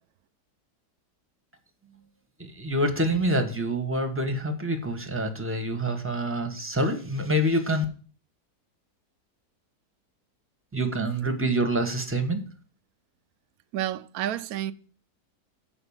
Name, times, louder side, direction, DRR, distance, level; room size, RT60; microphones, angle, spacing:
voice 1, 2.4-7.8 10.7-12.4, right 1 dB, 10° right, 1.1 m, -26 dB
voice 2, 13.7-14.7, right 12 dB, 70° right, 1.0 m, -30 dB
7.1 x 5.3 x 7.1 m
omnidirectional pair, 1.8 m